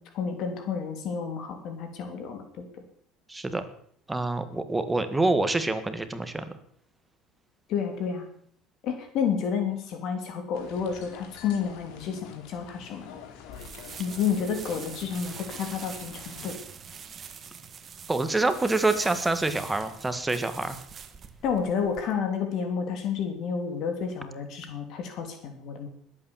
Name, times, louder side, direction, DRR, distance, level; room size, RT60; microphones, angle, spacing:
voice 1, 0.1-2.7 7.7-8.3 8.8-13.2 14.0-16.6 21.4-25.9, left 6 dB, 55° left, 5 dB, 3.1 m, -30 dB
voice 2, 3.3-3.6 4.1-6.4 18.1-20.8, right 2 dB, 10° right, 10 dB, 1.6 m, -26 dB
sound 1, 10.5-16.5, left 7 dB, 75° left, 2.7 m, -47 dB
sound 2, 13.5-22.0, right 7 dB, 30° right, 1.5 m, -44 dB
20.5 x 8.8 x 7.2 m, 0.62 s
cardioid pair, 130°, 0 cm